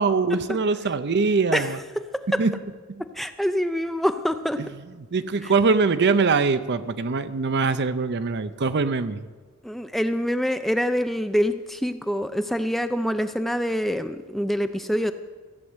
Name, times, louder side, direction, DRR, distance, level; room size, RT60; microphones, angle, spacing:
voice 1, 0.0-1.8 2.4-2.5 2.9-3.0 4.6-4.7 5.1-9.2, right 4 dB, 50° right, 12 dB, 0.6 m, -22 dB
voice 2, 3.2-4.6 5.4-5.5 9.6-15.1, equal, ahead, 9 dB, 0.4 m, -25 dB
14.5 x 7.8 x 8.0 m, 1.4 s
head